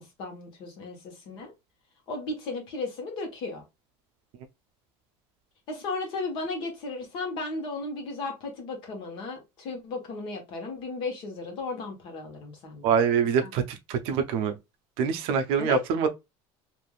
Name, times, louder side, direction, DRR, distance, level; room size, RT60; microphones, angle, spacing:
voice 1, 0.0-1.5 2.1-3.6 5.7-12.9 13.4-13.5 15.6-15.8, left 3 dB, 45° left, 1.0 m, -35 dB
voice 2, 12.8-14.6 15.0-16.1, right 7 dB, 55° right, 0.5 m, -25 dB
3.3 x 2.5 x 2.3 m
cardioid pair, 175°, 11 cm